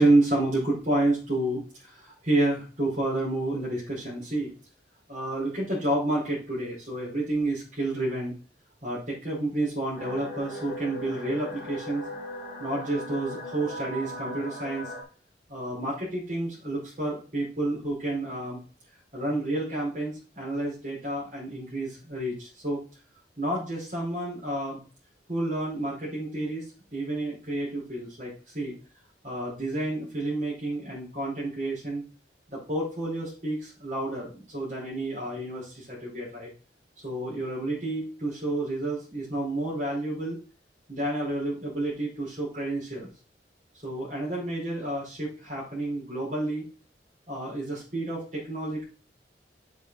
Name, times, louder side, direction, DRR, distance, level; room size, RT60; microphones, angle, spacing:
voice 1, 0.0-4.5 5.1-8.3 8.8-12.0 12.6-14.9 15.5-18.6 19.1-22.8 23.4-24.8 25.3-26.6 26.9-28.7 29.2-32.0 32.5-36.5 37.0-40.4 40.9-43.1 43.8-46.7 47.3-48.8, right 2 dB, 45° right, -6 dB, 5.0 m, -30 dB
sound 1, 9.9-15.0, equal, 15° right, 4.4 m, -38 dB
7.1 x 7.1 x 4.1 m, 0.35 s
head